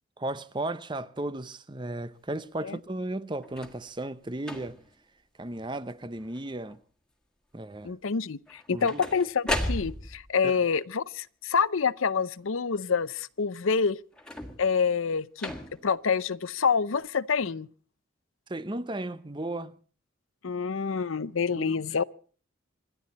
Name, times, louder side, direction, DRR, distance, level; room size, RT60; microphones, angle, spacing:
voice 1, 0.2-4.8 5.4-6.8 7.5-7.9 8.7-9.0 10.4-10.5 18.5-19.8 21.5-21.7, right 1 dB, 20° right, 0.7 m, -35 dB
sound 1, 3.4-3.8 4.4-4.9 5.5-5.9 6.2-6.8 8.5-10.3 14.1-14.8 15.4-16.0 16.8-16.9, left 1 dB, 5° left, 1.8 m, -35 dB
voice 2, 7.8-14.0 14.6-15.5 15.8-17.7 20.4-22.0, left 5 dB, 80° left, 0.7 m, -27 dB
27.0 x 12.5 x 4.2 m
head